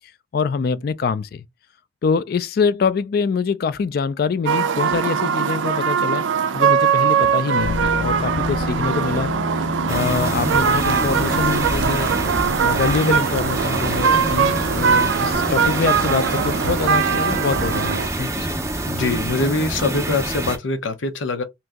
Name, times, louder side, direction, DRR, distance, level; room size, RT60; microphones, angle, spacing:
voice 1, 0.3-1.4 2.0-6.3 6.5-12.1 12.6-18.6, left 5 dB, 55° left, 0.3 m, -24 dB
sound 1, 4.5-18.1, right 7 dB, 85° right, 0.4 m, -21 dB
sound 2, 7.5-18.9, left 2 dB, 75° left, 1.1 m, -31 dB
sound 3, 9.9-20.6, right 2 dB, 15° right, 0.5 m, -27 dB
voice 2, 18.9-21.4, left 3 dB, 90° left, 0.7 m, -23 dB
2.9 x 2.6 x 3.5 m
head